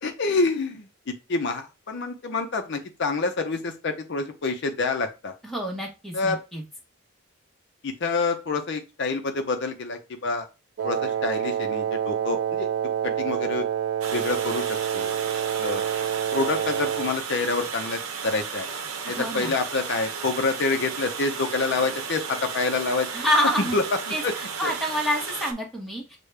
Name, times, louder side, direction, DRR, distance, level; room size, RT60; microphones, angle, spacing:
voice 1, 0.0-5.3 6.1-6.4 7.8-10.5 10.8-12.7 13.0-13.7 14.1-14.7 14.9-15.1 15.6-15.8 16.3-18.7 19.0-23.1 23.6-23.8 24.2-24.3 24.6-24.7, left 3 dB, 55° left, 6 dB, 0.5 m, -27 dB
voice 2, 5.4-6.6 19.1-19.5 23.1-23.7 24.1-26.2, equal, ahead, -1 dB, 0.9 m, -27 dB
Wind instrument woodwind instrument, 10.8-17.2, right 10 dB, 55° right, 0.3 m, -27 dB
Water, 14.0-25.5, right 6 dB, 80° right, 0.7 m, -34 dB
6.3 x 2.2 x 3.3 m, 0.28 s
head